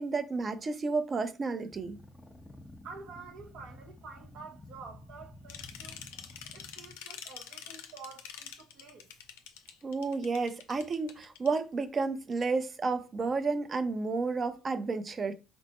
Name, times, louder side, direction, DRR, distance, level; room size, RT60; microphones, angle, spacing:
voice 1, 0.0-2.0 9.8-15.3, right 4 dB, 40° right, 0.5 m, -31 dB
sound 1, 1.7-7.0, left 2 dB, 20° left, 0.7 m, -51 dB
voice 2, 2.8-6.0 6.5-9.1, right 4 dB, 75° right, 0.8 m, -49 dB
sound 2, 5.5-11.6, left 9 dB, 85° left, 0.4 m, -46 dB
4.2 x 2.0 x 2.9 m
hypercardioid pair, 60°, 0 cm